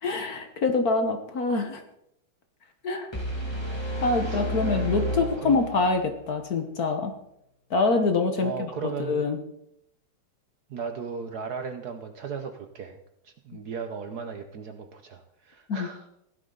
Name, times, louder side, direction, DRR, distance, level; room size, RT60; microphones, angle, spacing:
voice 1, 0.0-1.8 2.8-3.1 4.0-7.1 7.7-9.4 15.7-15.9, left 3 dB, 50° left, 6 dB, 1.4 m, -25 dB
sound 1, 3.1-6.1, equal, 15° left, 1.8 m, -31 dB
voice 2, 4.2-5.0 5.4-5.6 8.4-9.3 10.7-13.0 13.2-16.1, right 6 dB, 60° right, 6 dB, 1.2 m, -36 dB
16.0 x 12.0 x 3.9 m, 0.78 s
omnidirectional pair, 2.3 m